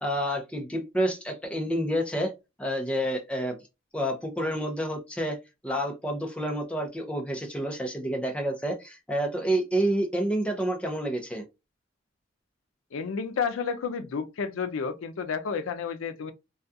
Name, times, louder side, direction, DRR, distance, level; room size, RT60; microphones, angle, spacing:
voice 1, 0.0-2.3 2.6-3.6 3.9-5.4 5.6-11.4, right 1 dB, 5° left, 0.5 m, -29 dB
voice 2, 12.9-16.3, left 6 dB, 85° left, 0.4 m, -31 dB
2.3 x 2.3 x 2.6 m
head